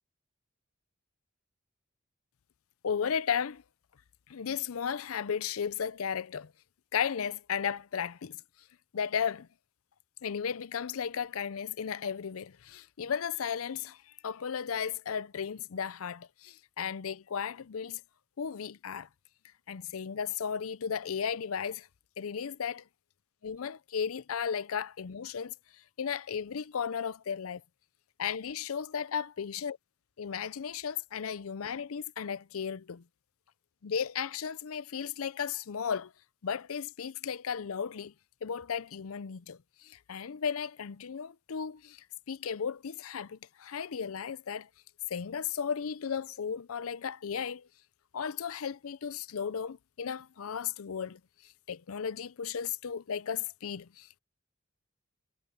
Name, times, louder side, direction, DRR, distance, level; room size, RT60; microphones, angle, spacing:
voice 1, 2.8-3.6 4.3-6.5 6.9-8.4 8.9-9.5 10.2-18.0 18.4-19.1 19.7-21.9 22.2-22.8 23.4-27.6 28.2-29.7 30.2-33.0 33.8-36.1 36.4-38.1 38.4-44.7 45.1-47.7 48.1-54.2, left 7 dB, 80° left, 0.5 m, -35 dB
head